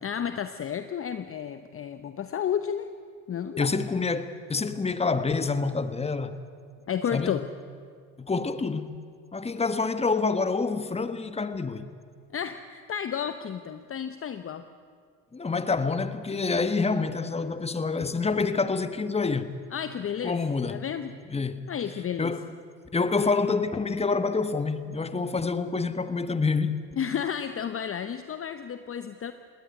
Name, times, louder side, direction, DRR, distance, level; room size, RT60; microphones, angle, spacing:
voice 1, 0.0-2.9 3.3-3.7 6.9-7.5 12.3-14.7 19.7-20.4 20.7-21.1 21.7-22.3 27.0-29.3, left 8 dB, 30° left, 0.9 m, -32 dB
voice 2, 3.6-6.4 7.1-7.3 8.2-9.0 9.3-11.9 15.3-19.5 20.2-20.8 21.3-21.7 22.2-22.5 22.9-26.8, left 4 dB, 15° left, 1.4 m, -27 dB
20.5 x 18.0 x 9.8 m
hypercardioid pair, 85°, 45 cm